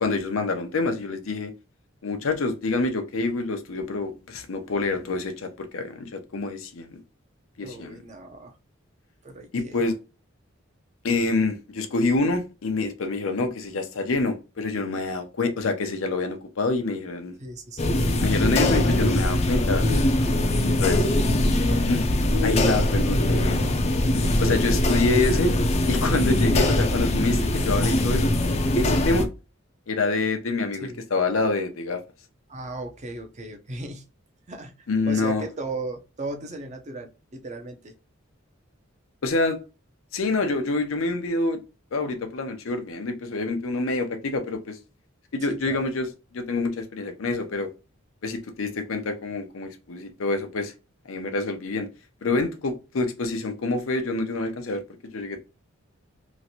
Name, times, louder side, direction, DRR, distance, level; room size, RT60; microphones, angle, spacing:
voice 1, 0.0-1.5 2.0-7.0 7.6-8.0 9.5-10.0 11.0-17.4 18.2-19.8 20.6-21.0 21.9-22.0 22.4-23.6 24.4-25.5 25.9-28.3 28.7-29.3 29.9-32.0 34.9-35.4 39.2-39.6 40.1-41.6 41.9-44.8 45.3-46.1 46.3-47.7 48.2-50.7 51.1-51.9 52.2-54.8 55.1-55.4, left 3 dB, 90° left, 0.6 m, -26 dB
voice 2, 7.6-8.5 9.2-9.9 17.4-18.1 30.8-31.0 32.5-34.0 34.5-37.9 45.5-45.9, right 2 dB, 35° right, 0.6 m, -36 dB
sound 1, 17.8-29.2, left 1 dB, 30° left, 0.4 m, -22 dB
3.0 x 2.5 x 2.7 m
head